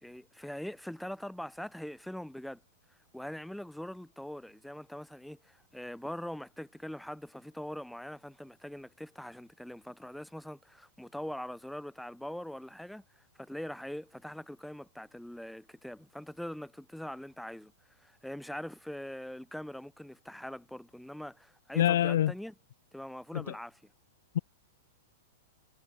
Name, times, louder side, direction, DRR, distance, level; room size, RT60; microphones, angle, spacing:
voice 1, 0.0-2.6 3.1-13.0 13.4-17.7 18.0-22.5 22.9-23.8, left 1 dB, ahead, 2.6 m, -42 dB
voice 2, 21.8-22.3 23.3-23.5 24.3-24.4, left 11 dB, 65° left, 0.6 m, -26 dB
supercardioid pair, 170°, 0 cm